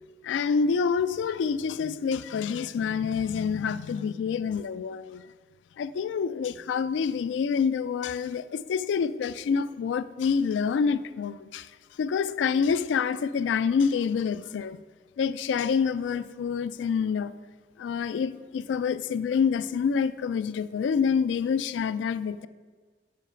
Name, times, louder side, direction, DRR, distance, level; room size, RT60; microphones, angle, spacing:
voice 1, 0.2-5.3 5.8-11.7 12.0-14.8 15.2-17.3 17.8-22.5, left 6 dB, 80° left, 0.3 m, -27 dB
7.4 x 5.2 x 5.7 m
head